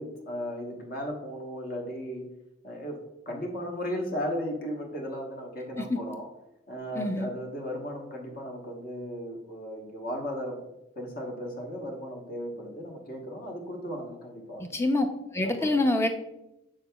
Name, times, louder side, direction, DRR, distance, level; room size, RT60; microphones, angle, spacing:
voice 1, 0.0-2.3 2.6-3.0 3.3-6.3 6.7-10.7 11.0-14.7 15.4-15.7, equal, 45° left, 1 dB, 1.0 m, -36 dB
voice 2, 7.0-7.3 14.7-15.1 15.3-16.1, left 2 dB, 15° left, 5 dB, 0.5 m, -25 dB
7.4 x 6.2 x 2.3 m, 0.90 s
head